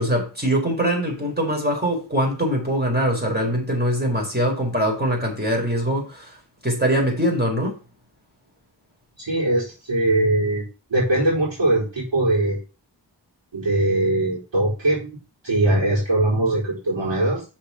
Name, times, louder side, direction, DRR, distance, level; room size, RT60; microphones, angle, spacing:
voice 1, 0.0-6.4 6.6-7.8, equal, 20° right, 4.7 m, -22 dB
voice 2, 9.2-10.6 10.9-12.6 13.5-15.1 15.4-17.4, right 2 dB, 80° right, 4.8 m, -21 dB
6.8 x 6.3 x 6.0 m
wide cardioid pair, 55°, 44 cm